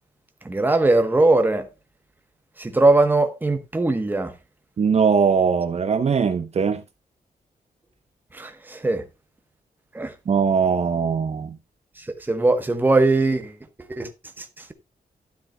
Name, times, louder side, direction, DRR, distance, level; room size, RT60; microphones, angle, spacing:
voice 1, 0.4-1.7 2.6-4.3 8.3-9.0 9.9-10.1 12.3-13.5 13.8-14.1 14.4-14.5, right 2 dB, 10° right, 1.0 m, -20 dB
voice 2, 4.8-6.8 10.3-11.6, right 6 dB, 45° right, 0.8 m, -20 dB
12.0 x 10.5 x 2.2 m
wide cardioid pair, 175°, 15 cm